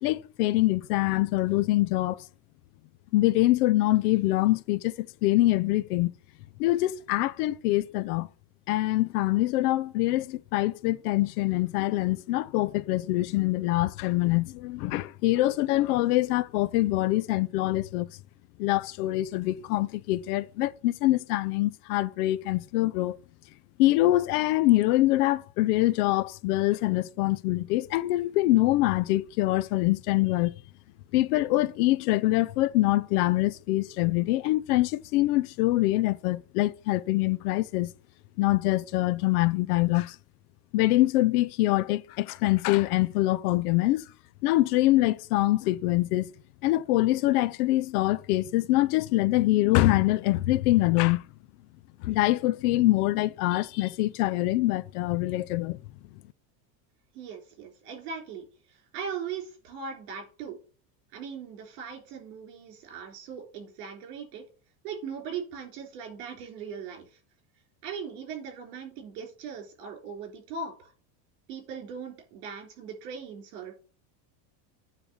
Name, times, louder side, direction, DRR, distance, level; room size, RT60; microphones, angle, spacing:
voice 1, 0.0-2.2 3.1-6.1 6.6-8.3 8.7-18.1 18.6-23.2 23.8-30.5 31.1-37.9 38.4-40.2 40.7-44.0 44.4-46.3 46.6-51.2 52.0-55.8, left 17 dB, 70° left, 0.7 m, -24 dB
voice 2, 57.1-58.4 58.9-60.6 61.1-64.4 64.8-67.1 67.8-70.9 71.5-73.7, right 6 dB, 65° right, 3.9 m, -39 dB
9.6 x 3.5 x 6.8 m
cardioid pair, 170°, 47 cm